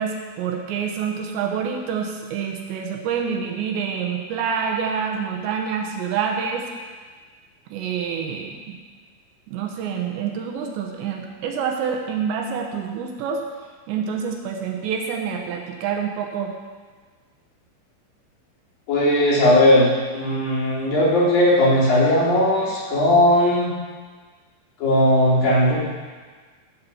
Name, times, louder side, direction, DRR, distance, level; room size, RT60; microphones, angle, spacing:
voice 1, 0.0-6.7 7.7-8.6 9.5-13.4 13.9-16.5, right 6 dB, 75° right, 2 dB, 2.8 m, -27 dB
voice 2, 18.9-23.7 24.8-25.8, left 1 dB, 45° left, -8 dB, 4.7 m, -17 dB
15.0 x 5.6 x 7.0 m, 1.5 s
omnidirectional pair, 5.9 m